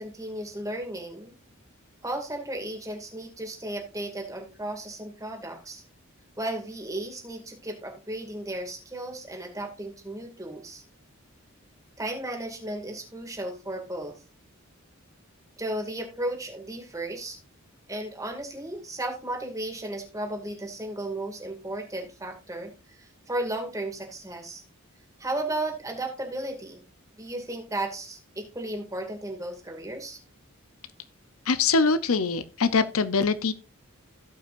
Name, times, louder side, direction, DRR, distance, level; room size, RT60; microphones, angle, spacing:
voice 1, 0.0-1.3 2.0-5.8 6.4-10.8 12.0-14.2 15.6-17.4 17.9-24.6 25.2-26.9 27.2-30.2, right 1 dB, 15° right, 2.3 m, -34 dB
voice 2, 31.5-33.5, left 4 dB, 80° left, 0.7 m, -23 dB
17.0 x 5.7 x 2.6 m
head